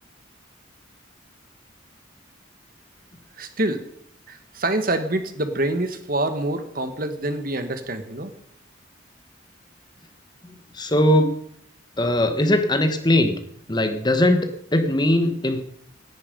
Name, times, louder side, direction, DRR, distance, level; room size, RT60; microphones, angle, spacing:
voice 1, 3.4-3.8 4.3-8.3, right 1 dB, 45° right, 9 dB, 1.5 m, -26 dB
voice 2, 10.7-11.3 12.0-13.4 13.7-15.6, left 1 dB, 20° left, 8 dB, 1.3 m, -20 dB
18.0 x 11.0 x 5.3 m, 0.68 s
head